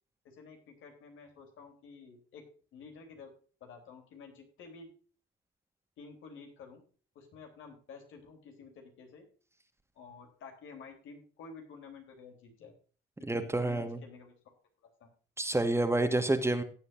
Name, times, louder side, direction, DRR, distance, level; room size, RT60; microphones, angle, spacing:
voice 1, 0.2-2.4 2.7-3.3 3.6-4.9 6.0-6.8 7.1-9.3 9.9-12.7 13.2-14.5 14.8-15.1, left 5 dB, 85° left, 3 dB, 3.5 m, -51 dB
voice 2, 13.2-14.0 15.4-16.6, right 2 dB, 15° right, 7 dB, 1.6 m, -28 dB
17.5 x 7.9 x 2.6 m, 0.42 s
cardioid pair, 90°, 20 cm